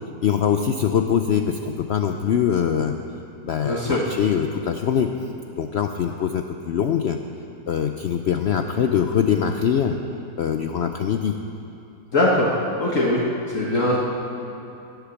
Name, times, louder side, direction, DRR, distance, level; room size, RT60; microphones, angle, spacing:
voice 1, 0.2-2.9 3.4-5.1 5.5-7.2 7.7-10.0 10.4-11.3, left 8 dB, 90° left, 6 dB, 0.5 m, -23 dB
voice 2, 3.6-4.1 12.1-13.2 13.5-14.0, left 1 dB, 50° left, -5 dB, 1.7 m, -21 dB
17.0 x 8.2 x 7.0 m, 2.8 s
omnidirectional pair, 1.8 m